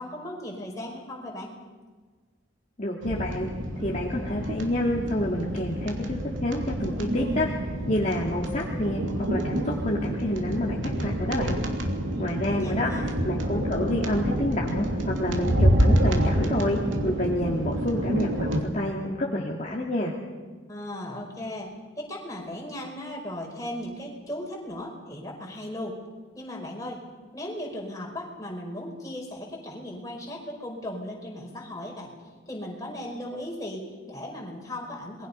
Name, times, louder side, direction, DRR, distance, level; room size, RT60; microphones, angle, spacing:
voice 1, 0.0-1.5 12.1-13.2 20.7-26.0 26.3-27.0 27.3-32.1 32.5-35.3, left 1 dB, 15° left, -1 dB, 5.3 m, -37 dB
voice 2, 2.8-3.5 3.8-7.5 7.9-11.6 12.2-12.9 13.2-20.1, left 1 dB, 40° left, -3 dB, 2.4 m, -28 dB
sound 1, 3.0-18.6, equal, 80° right, 3.0 m, -27 dB
27.5 x 22.0 x 5.6 m, 1.4 s
head